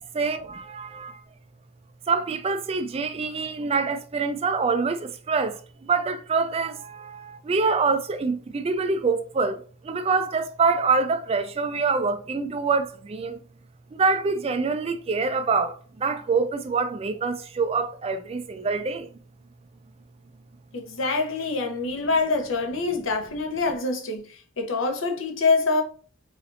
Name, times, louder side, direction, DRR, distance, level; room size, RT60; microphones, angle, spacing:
voice 1, 0.1-1.2 2.1-13.4 13.9-19.1, right 4 dB, 30° right, 0.3 m, -25 dB
voice 2, 20.7-24.3 24.6-25.8, left 3 dB, 65° left, 0.8 m, -25 dB
3.8 x 3.3 x 2.5 m
head